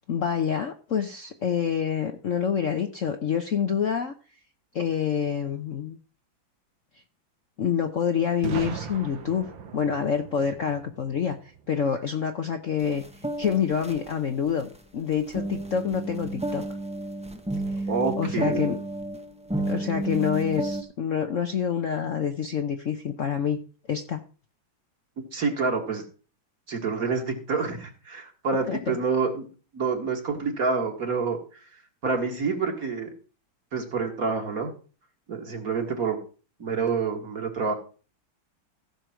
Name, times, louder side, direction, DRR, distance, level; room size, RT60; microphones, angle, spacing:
voice 1, 0.1-4.1 4.7-6.0 7.6-9.5 9.7-13.0 13.4-16.7 17.6-17.9 18.2-18.8 19.7-23.6 23.9-24.2 28.7-29.0, left 7 dB, 55° left, 6 dB, 0.9 m, -27 dB
Boom, 8.4-12.3, right 6 dB, 75° right, 2.0 m, -38 dB
sound 1, 12.8-14.8 15.1-20.8, right 2 dB, 5° right, 0.5 m, -31 dB
voice 2, 17.9-18.7 25.3-26.0 26.7-29.5 29.7-31.4 32.0-33.1 33.7-34.7 35.3-36.2 36.6-37.7, right 4 dB, 45° right, 3 dB, 2.3 m, -27 dB
15.0 x 6.7 x 4.4 m, 0.37 s
omnidirectional pair, 2.2 m